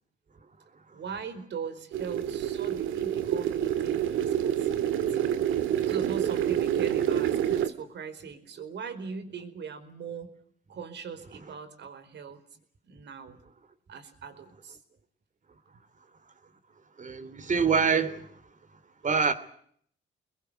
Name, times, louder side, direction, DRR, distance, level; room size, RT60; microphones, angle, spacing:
voice 1, 0.9-10.3 10.7-12.4 12.8-13.4 13.9-14.8, right 6 dB, 65° right, 4.7 m, -41 dB
sound 1, 1.9-7.7, right 10 dB, 85° right, 1.9 m, -27 dB
voice 2, 17.0-18.5 19.0-19.3, right 5 dB, 40° right, 3.0 m, -26 dB
26.5 x 21.5 x 8.1 m
cardioid pair, 90°, 20 cm